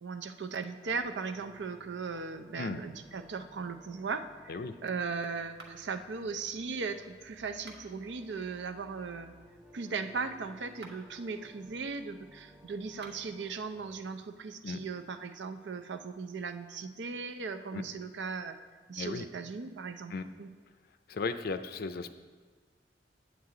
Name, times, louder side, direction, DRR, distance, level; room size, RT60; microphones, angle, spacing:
voice 1, 0.0-9.3 9.7-18.6 18.9-20.1 20.4-20.5, right 4 dB, 85° right, 8 dB, 0.5 m, -38 dB
sound 1, 0.9-14.1, equal, 5° right, 0.6 m, -58 dB
sound 2, 5.5-6.1 7.5-8.1 10.7-11.2 12.9-13.4, right 3 dB, 70° right, 1.0 m, -53 dB
voice 2, 21.1-22.1, left 4 dB, 60° left, 10 dB, 0.4 m, -35 dB
8.1 x 8.0 x 3.8 m, 1.5 s
head